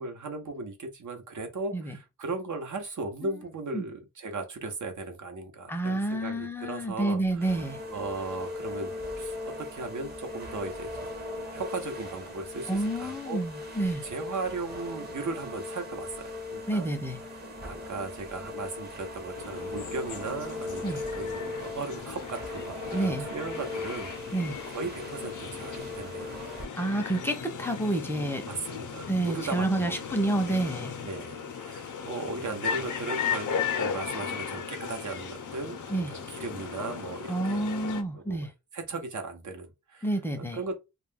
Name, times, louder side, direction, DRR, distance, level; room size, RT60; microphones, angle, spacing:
voice 1, 0.0-7.5 7.9-10.9 11.5-13.4 14.0-16.9 17.3-24.1 24.7-26.4 28.4-30.0 30.5-37.6 38.1-40.1 40.4-40.8, right 3 dB, 60° right, 0.8 m, -37 dB
voice 2, 5.7-7.8 12.7-14.0 16.7-17.2 20.8-21.0 22.9-23.3 24.3-24.6 26.8-28.5 29.1-30.9 35.9-36.1 37.3-38.5 40.0-40.6, right 1 dB, 5° left, 0.6 m, -29 dB
sound 1, 7.4-26.6, left 2 dB, 30° right, 0.9 m, -39 dB
sound 2, 19.3-38.0, left 7 dB, 60° left, 0.6 m, -36 dB
2.3 x 2.2 x 3.4 m
wide cardioid pair, 85°, 34 cm